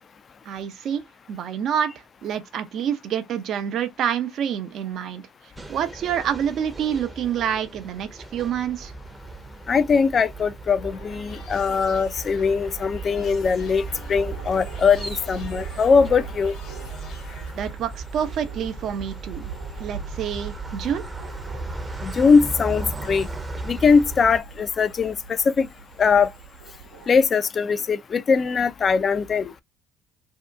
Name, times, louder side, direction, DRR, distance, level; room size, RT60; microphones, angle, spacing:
voice 1, 0.4-8.9 17.5-19.5 19.8-21.0, right 8 dB, 60° right, 0.6 m, -28 dB
sound 1, 5.6-24.4, right 2 dB, 20° right, 0.7 m, -36 dB
voice 2, 9.7-16.6 22.0-23.3 23.6-25.7 26.0-26.3 27.1-29.5, left 5 dB, 45° left, 0.4 m, -21 dB
sound 2, 10.7-17.5, left 5 dB, 60° left, 1.0 m, -46 dB
sound 3, 14.0-27.3, right 7 dB, 85° right, 0.9 m, -43 dB
2.8 x 2.2 x 3.4 m
supercardioid pair, 70°, 0 cm